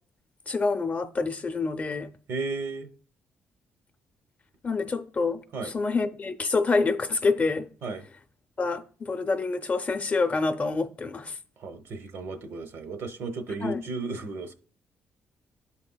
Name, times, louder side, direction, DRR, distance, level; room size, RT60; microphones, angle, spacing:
voice 1, 0.5-2.1 4.6-7.7 8.6-11.4 13.6-13.8, left 4 dB, 35° left, 0.6 m, -27 dB
voice 2, 2.3-2.9 5.5-5.7 7.8-8.0 11.6-14.5, right 3 dB, 70° right, 0.8 m, -34 dB
11.0 x 4.2 x 2.2 m
cardioid pair, 85°, 4 cm